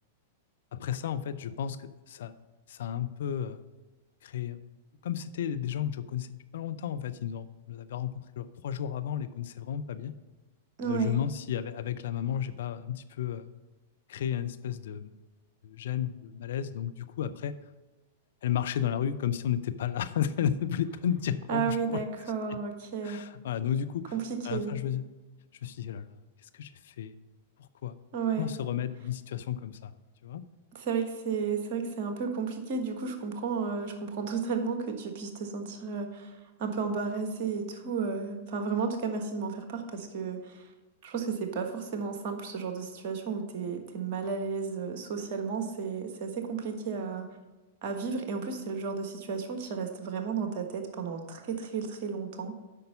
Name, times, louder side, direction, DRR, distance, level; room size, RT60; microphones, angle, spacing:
voice 1, 0.7-2.3 2.7-3.6 4.2-4.6 5.0-10.1 10.8-13.5 14.1-15.1 15.6-17.5 18.4-22.0 22.5-22.6 23.0-24.1 24.4-25.1 25.6-26.1 26.4-27.1 27.6-27.9 28.4-29.9 30.2-30.4, left 9 dB, 65° left, 11 dB, 0.5 m, -33 dB
voice 2, 10.8-11.2 21.5-23.2 24.1-24.7 28.1-28.5 30.7-40.7 41.0-47.3 47.8-52.5, right 5 dB, 45° right, 5 dB, 1.3 m, -33 dB
8.3 x 5.4 x 5.4 m, 1.2 s
figure-of-eight pair, 100°, 0 cm